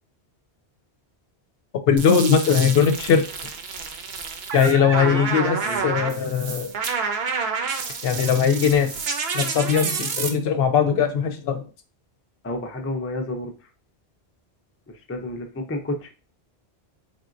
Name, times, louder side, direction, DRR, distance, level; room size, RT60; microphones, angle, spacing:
voice 1, 1.9-3.2 4.5-5.6 5.8-6.7 8.0-8.9 9.3-11.6, left 7 dB, 70° left, 7 dB, 0.8 m, -20 dB
sound 1, 2.0-10.3, right 5 dB, 75° right, 0.9 m, -29 dB
voice 2, 5.6-6.2 12.4-13.7 14.9-16.1, left 1 dB, 20° left, 3 dB, 0.4 m, -31 dB
3.9 x 3.6 x 2.5 m, 0.35 s
omnidirectional pair, 1.1 m